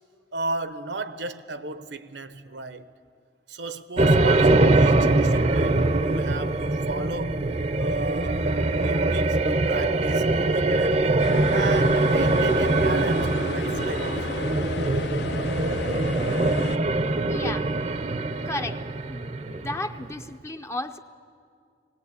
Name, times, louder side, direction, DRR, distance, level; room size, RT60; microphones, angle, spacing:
voice 1, 0.3-2.9 3.5-7.4 7.8-8.4 8.8-11.2 11.5-14.4, right 2 dB, 75° right, 0.9 m, -34 dB
sound 1, 4.0-20.2, right 2 dB, 40° right, 0.6 m, -23 dB
sound 2, 11.2-16.8, left 4 dB, 70° left, 0.5 m, -34 dB
voice 2, 17.3-17.7 18.4-21.0, left 2 dB, 15° left, 0.5 m, -34 dB
20.0 x 18.5 x 8.4 m
head